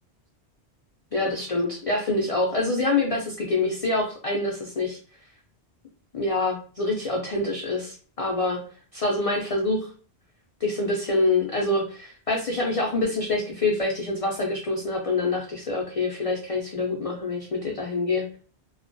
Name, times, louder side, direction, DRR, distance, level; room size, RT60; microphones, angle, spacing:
voice 1, 1.1-5.0 6.1-8.6 8.9-9.9 10.6-18.2, left 2 dB, 60° left, 0 dB, 0.3 m, -26 dB
2.2 x 2.2 x 2.5 m, 0.40 s
omnidirectional pair, 1.1 m